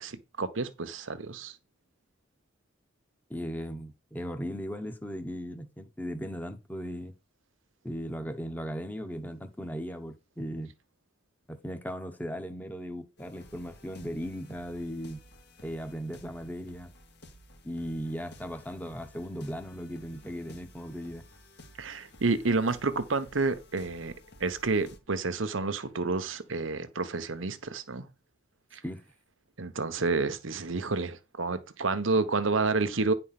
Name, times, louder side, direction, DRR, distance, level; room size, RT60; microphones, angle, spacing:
voice 1, 0.0-1.6 21.8-24.1 24.4-28.1 28.7-28.8 29.6-33.1, right 3 dB, 85° right, 1.1 m, -29 dB
voice 2, 3.3-7.1 7.8-10.7 11.5-15.2 15.6-16.9 17.6-21.2 28.8-29.0, equal, 10° left, 1.1 m, -37 dB
sound 1, 13.2-25.0, left 1 dB, 60° left, 1.7 m, -54 dB
10.0 x 4.3 x 5.9 m
head